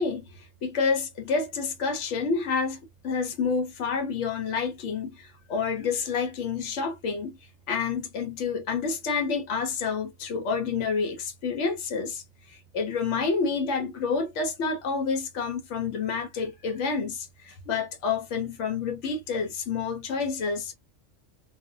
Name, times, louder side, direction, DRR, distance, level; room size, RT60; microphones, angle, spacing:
voice 1, 0.0-2.8 3.0-7.4 7.7-12.2 12.5-20.7, left 5 dB, 70° left, 1.0 m, -29 dB
2.6 x 2.1 x 2.6 m
omnidirectional pair, 1.3 m